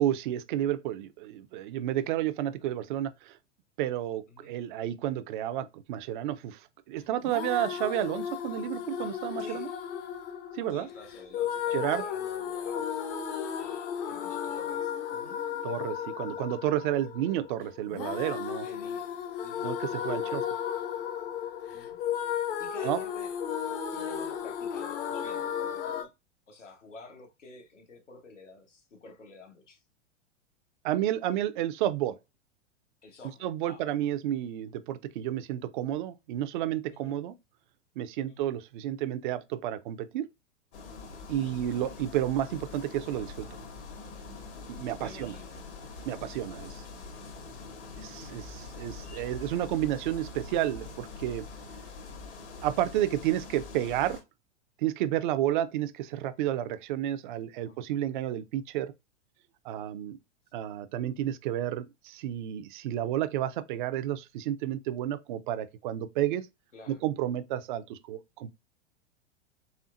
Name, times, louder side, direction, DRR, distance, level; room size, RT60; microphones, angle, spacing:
voice 1, 0.0-3.4 3.8-6.6 6.9-9.7 10.5-10.9 11.7-12.0 15.6-18.7 19.6-20.4 22.8-23.0 30.8-32.2 33.4-37.4 38.0-40.3 41.3-43.5 44.7-45.4 46.1-46.8 48.0-51.5 52.6-54.2 54.8-58.9 59.6-60.2 60.5-66.5 66.9-68.5, right 12 dB, 45° right, 0.5 m, -31 dB
sound 1, 7.2-26.0, left 8 dB, 50° left, 0.9 m, -34 dB
voice 2, 9.4-9.7 10.7-12.9 13.6-15.4 18.6-19.0 19.4-19.6 20.1-20.4 21.7-22.0 22.6-23.3 23.9-26.1 26.5-29.8 33.0-33.9 36.9-37.2 38.3-38.5 41.3-41.6 45.0-45.6 50.8-51.0 57.6-57.8 66.7-67.0, left 2 dB, 80° left, 1.5 m, -49 dB
sound 2, 40.7-54.2, left 3 dB, 65° left, 1.7 m, -44 dB
4.3 x 3.5 x 2.5 m
figure-of-eight pair, 100°, 36 cm